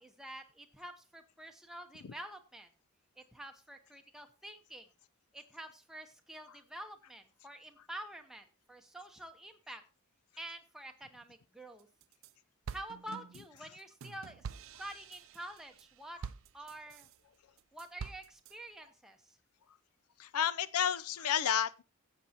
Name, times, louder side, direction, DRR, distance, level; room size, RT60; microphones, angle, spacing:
voice 1, 0.0-2.7 3.2-4.9 5.3-9.8 10.4-11.9 12.7-14.5 14.8-16.2 16.5-17.1 17.7-19.4, right 1 dB, ahead, 0.8 m, -48 dB
sound 1, 11.8-12.3 12.7-17.2 17.6-18.5, right 6 dB, 60° right, 0.4 m, -47 dB
voice 2, 20.2-21.8, left 9 dB, 80° left, 0.5 m, -31 dB
16.0 x 7.7 x 2.9 m
head